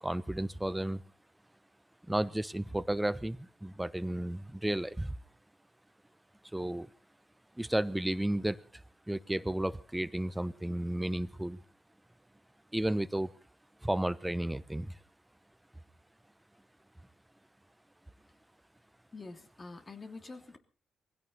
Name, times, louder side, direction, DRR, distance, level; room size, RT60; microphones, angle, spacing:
voice 1, 0.0-1.0 2.1-5.1 6.5-6.9 7.6-8.6 9.1-11.6 12.7-13.3 13.8-15.0, right 1 dB, 10° right, 17 dB, 0.9 m, -33 dB
voice 2, 19.1-20.6, left 3 dB, 40° left, 5 dB, 3.0 m, -46 dB
21.0 x 16.0 x 4.1 m, 0.38 s
hypercardioid pair, 40°, 0 cm